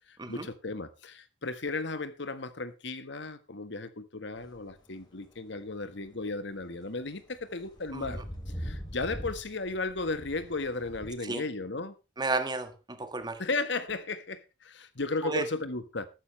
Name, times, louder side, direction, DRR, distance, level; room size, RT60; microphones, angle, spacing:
voice 1, 0.1-11.9 13.4-16.1, left 3 dB, 70° left, 1.5 m, -35 dB
sound 1, 4.4-4.6 5.0-5.1 5.7-6.0 6.8-11.1, equal, 25° left, 3.4 m, -41 dB
voice 2, 12.2-13.4 15.2-15.4, right 3 dB, 25° right, 1.7 m, -32 dB
13.5 x 12.5 x 3.3 m
head